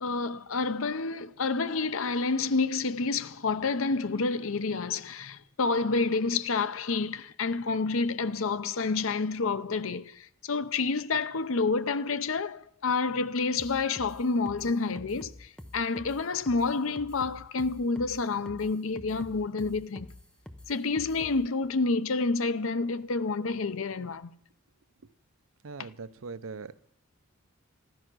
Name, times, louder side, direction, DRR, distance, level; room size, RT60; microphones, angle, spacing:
voice 1, 0.0-20.1 20.7-24.3 25.8-25.9, left 4 dB, 70° left, 0.7 m, -29 dB
sound 1, 13.6-21.5, left 1 dB, 5° left, 0.8 m, -47 dB
voice 2, 25.6-26.8, right 4 dB, 70° right, 0.6 m, -41 dB
15.0 x 12.0 x 6.2 m
head